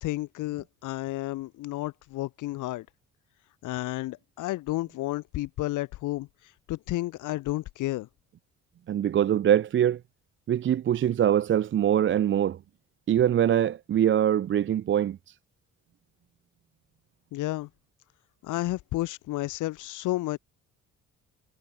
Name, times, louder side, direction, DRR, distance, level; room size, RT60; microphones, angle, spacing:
voice 1, 0.0-2.9 3.6-8.1 17.3-17.7 18.4-20.4, left 17 dB, 85° left, 0.8 m, -32 dB
voice 2, 8.9-10.0 10.5-12.6 13.1-15.3, right 10 dB, 40° right, 0.5 m, -23 dB
cardioid pair, 90°, 30 cm